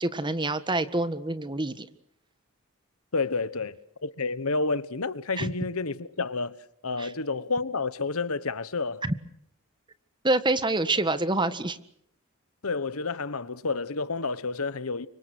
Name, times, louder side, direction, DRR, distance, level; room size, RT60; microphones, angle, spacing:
voice 1, 0.0-1.9 5.4-5.5 7.0-7.1 9.0-9.1 10.2-11.8, right 2 dB, 20° right, 1.6 m, -26 dB
voice 2, 3.1-6.5 6.8-9.0 12.6-15.1, left 3 dB, 75° left, 1.3 m, -30 dB
30.0 x 25.5 x 6.3 m
head